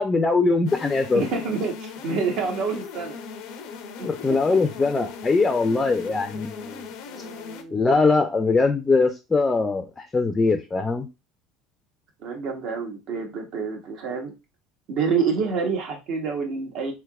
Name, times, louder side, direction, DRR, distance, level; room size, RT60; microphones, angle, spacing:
voice 1, 0.0-1.2 4.0-6.8 7.7-11.1, left 3 dB, 20° left, 6 dB, 0.4 m, -22 dB
sound 1, 0.7-7.6, left 5 dB, 70° left, 0.5 m, -39 dB
voice 2, 1.1-3.2 4.0-4.1 7.1-8.0 12.2-14.3 14.9-16.9, right 5 dB, 60° right, 2 dB, 1.0 m, -28 dB
3.3 x 2.9 x 2.3 m, 0.26 s
supercardioid pair, 115°, 0 cm